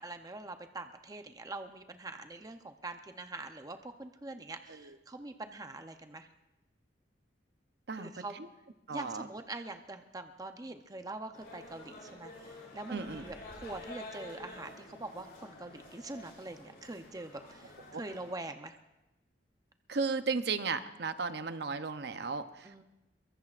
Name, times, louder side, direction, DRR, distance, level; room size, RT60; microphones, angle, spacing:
voice 1, 0.0-6.3 8.0-8.4 8.9-12.3 12.7-13.4 13.6-17.6 17.9-18.7 22.6-22.8, right 2 dB, 20° right, 7 dB, 0.7 m, -44 dB
voice 2, 7.9-8.5 8.9-9.3 12.9-13.3 17.9-18.0 19.9-22.8, right 4 dB, 65° right, 10 dB, 0.7 m, -35 dB
sound 1, 11.3-18.3, left 2 dB, 55° left, 5.0 m, -49 dB
23.0 x 21.5 x 2.5 m, 0.97 s
head